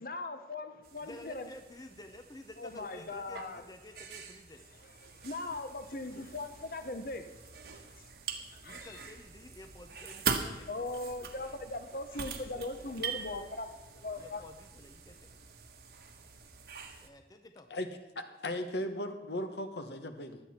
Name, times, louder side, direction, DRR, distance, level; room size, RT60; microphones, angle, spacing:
voice 1, 0.0-1.5 2.6-3.6 5.0-8.1 8.5-9.0 10.7-14.4, left 2 dB, 50° left, 8 dB, 0.9 m, -40 dB
sound 1, 0.8-17.1, right 6 dB, 55° right, 1.3 m, -43 dB
voice 2, 1.0-4.6 8.6-10.7 14.2-15.3 17.0-17.7, left 1 dB, 20° left, 7 dB, 0.6 m, -51 dB
voice 3, 18.1-20.4, left 1 dB, 65° left, 7 dB, 1.3 m, -37 dB
16.0 x 11.5 x 4.3 m, 1.1 s
head